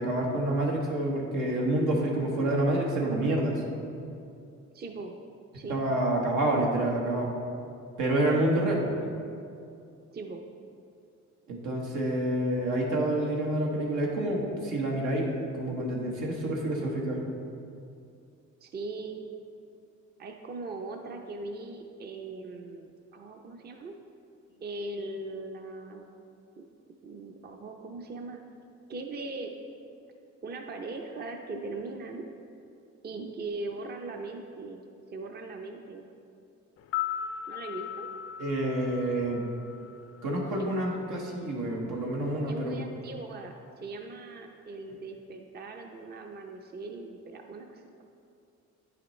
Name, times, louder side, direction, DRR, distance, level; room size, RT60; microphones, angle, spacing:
voice 1, 0.0-3.6 5.7-7.3 8.0-8.9 11.5-17.2 38.4-39.4 40.2-42.8, right 1 dB, 85° right, -1 dB, 1.3 m, -28 dB
voice 2, 4.7-5.1 5.5-5.8 10.1-10.4 18.6-19.2 20.2-23.9 24.6-26.1 26.6-26.7 27.0-28.4 28.9-29.5 30.4-32.2 33.0-34.9 35.1-36.1 37.5-38.1 40.6-40.8 42.5-48.0, right 3 dB, 35° right, 3 dB, 0.6 m, -40 dB
sound 1, 36.8-40.9 41.2-41.3, left 10 dB, 50° left, 0.4 m, -38 dB
8.9 x 5.7 x 3.1 m, 2.5 s
cardioid pair, 90°, 30 cm